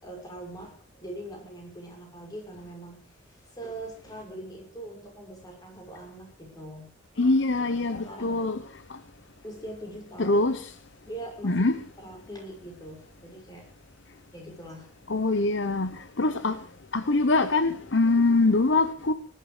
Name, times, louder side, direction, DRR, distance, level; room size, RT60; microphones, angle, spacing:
voice 1, 0.0-6.9 7.5-8.4 9.4-10.5 11.1-11.7 12.0-13.7 14.3-15.0, right 1 dB, 20° left, 5.6 m, -42 dB
voice 2, 7.2-8.6 8.9-9.0 10.2-10.6 11.4-11.8 15.1-16.6 16.9-19.1, left 2 dB, 65° left, 0.9 m, -23 dB
19.5 x 11.0 x 5.0 m
head